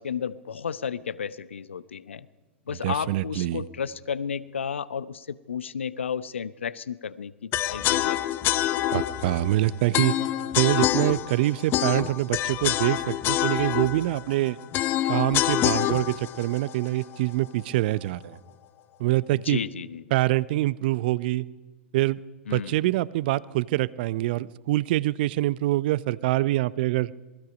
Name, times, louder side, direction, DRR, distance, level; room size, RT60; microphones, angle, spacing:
voice 1, 0.0-2.3 2.7-8.2 19.3-20.0 22.5-22.8, left 7 dB, 75° left, 18 dB, 0.8 m, -33 dB
voice 2, 2.8-3.6 8.9-10.2 10.6-14.6 15.1-18.4 19.0-19.6 20.1-21.5 21.9-22.2 22.5-27.1, right 17 dB, 50° right, 20 dB, 0.6 m, -25 dB
sound 1, 7.5-17.6, left 13 dB, 35° left, 0.8 m, -27 dB
27.0 x 20.5 x 5.3 m, 1.3 s
figure-of-eight pair, 100°, 7 cm